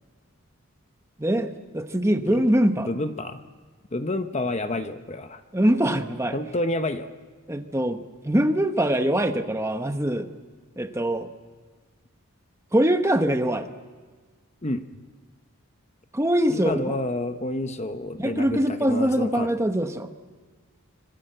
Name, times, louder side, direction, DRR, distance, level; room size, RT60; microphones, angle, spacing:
voice 1, 1.2-2.9 5.5-6.4 7.5-10.3 10.8-11.3 12.7-13.7 16.1-16.9 18.2-20.1, right 1 dB, 10° right, 7 dB, 1.0 m, -23 dB
voice 2, 2.9-3.4 3.9-5.4 6.3-7.1 14.6-14.8 16.5-19.6, left 1 dB, 30° left, 9 dB, 0.9 m, -29 dB
26.0 x 24.0 x 7.8 m, 1.5 s
head